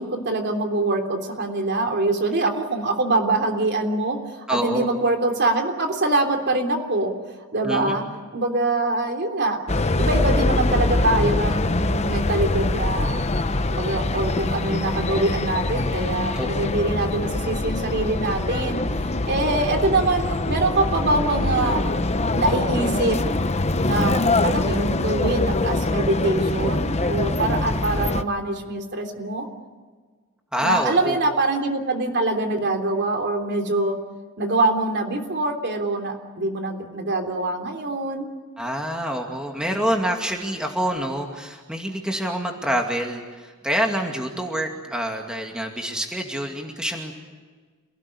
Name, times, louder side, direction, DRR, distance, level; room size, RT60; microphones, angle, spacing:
voice 1, 0.0-7.1 7.5-8.0 8.3-9.6 10.0-13.2 13.7-18.8 19.2-21.8 22.3-23.2 23.8-29.5 30.6-34.0 34.4-38.3, right 2 dB, 50° right, 5 dB, 3.4 m, -24 dB
voice 2, 4.5-4.9 7.6-7.9 16.3-16.5 30.5-31.2 38.6-47.1, equal, 5° right, 2 dB, 2.4 m, -26 dB
sound 1, 9.7-28.2, left 2 dB, 30° left, 0.9 m, -23 dB
28.0 x 18.0 x 9.9 m, 1.4 s
head